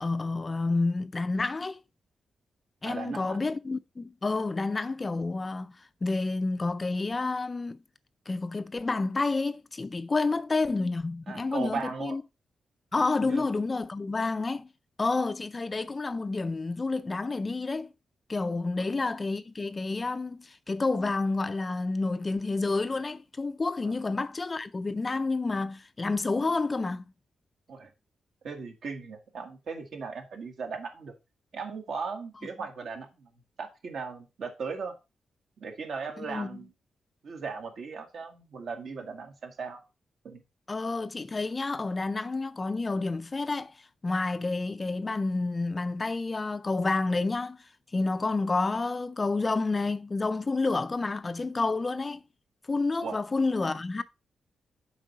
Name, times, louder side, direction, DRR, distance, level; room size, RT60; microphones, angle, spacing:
voice 1, 0.0-1.8 2.8-7.8 8.3-12.2 12.9-14.7 15.0-17.9 18.3-27.1 36.2-36.5 40.7-52.2 52.7-54.0, left 3 dB, 25° left, 0.4 m, -29 dB
voice 2, 2.8-3.4 11.3-12.2 13.2-13.4 18.8-18.9 23.8-23.9 27.7-27.9 28.4-31.1 31.5-33.3 33.6-34.9 35.6-36.7 37.2-39.8 40.2-40.4 53.0-53.2, right 5 dB, 65° right, 1.5 m, -37 dB
7.3 x 4.7 x 4.0 m
wide cardioid pair, 125°, 0 cm